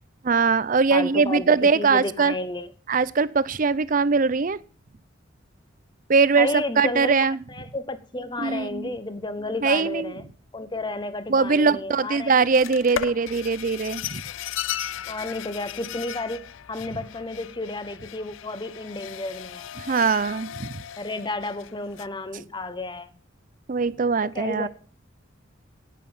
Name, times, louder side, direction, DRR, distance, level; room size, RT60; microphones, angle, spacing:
voice 1, 0.2-2.3 2.9-4.6 6.1-7.4 8.4-8.9 9.6-10.1 11.3-14.2 19.8-20.8 23.7-24.7, right 4 dB, 45° right, 0.5 m, -21 dB
voice 2, 0.9-2.7 6.4-7.2 7.5-12.4 15.1-19.7 21.0-23.1 24.2-24.7, left 2 dB, 25° left, 1.0 m, -32 dB
sound 1, 12.5-22.1, left 10 dB, 90° left, 0.4 m, -36 dB
10.0 x 9.1 x 5.5 m
head